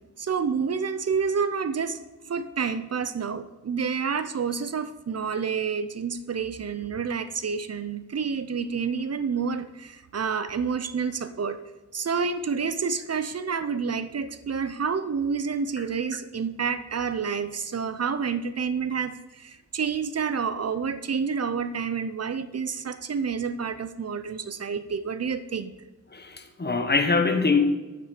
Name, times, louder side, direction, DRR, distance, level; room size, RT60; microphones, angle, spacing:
voice 1, 0.2-2.0 2.3-11.6 11.9-25.7, right 6 dB, 55° right, 0.6 m, -29 dB
voice 2, 26.1-27.6, left 4 dB, 35° left, 1.2 m, -23 dB
9.3 x 9.0 x 4.9 m
wide cardioid pair, 130°, 31 cm